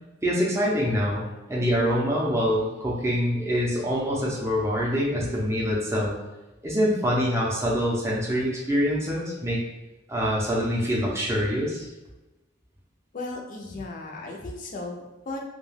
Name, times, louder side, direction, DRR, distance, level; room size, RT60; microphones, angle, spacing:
voice 1, 0.2-6.2 6.6-9.6 10.1-11.9, equal, 15° right, -5 dB, 0.6 m, -25 dB
voice 2, 13.1-15.5, left 2 dB, 40° left, 0 dB, 0.5 m, -36 dB
2.3 x 2.2 x 3.2 m, 1.0 s
head